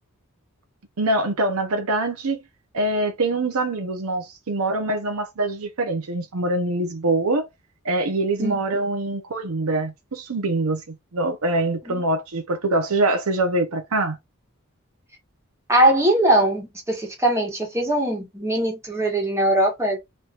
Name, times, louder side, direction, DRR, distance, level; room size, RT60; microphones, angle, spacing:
voice 1, 1.0-2.4 2.7-7.5 7.8-14.2, right 2 dB, 75° right, 0.7 m, -24 dB
voice 2, 15.7-20.0, right 1 dB, 15° right, 1.4 m, -21 dB
3.2 x 2.9 x 2.4 m
head